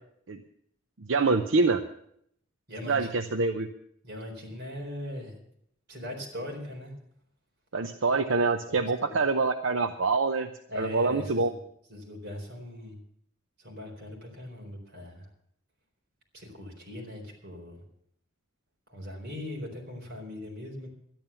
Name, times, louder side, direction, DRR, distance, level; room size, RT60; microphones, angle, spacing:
voice 1, 1.1-1.8 2.8-3.7 7.7-10.5 10.7-11.5, right 3 dB, 80° right, 7 dB, 0.7 m, -25 dB
voice 2, 2.7-3.3 4.0-5.4 5.9-6.9 8.7-9.2 10.7-11.6 11.9-13.0 13.6-15.3 16.3-17.8 18.9-20.9, left 1 dB, 55° right, 0 dB, 4.2 m, -40 dB
12.5 x 10.5 x 7.0 m, 0.70 s
head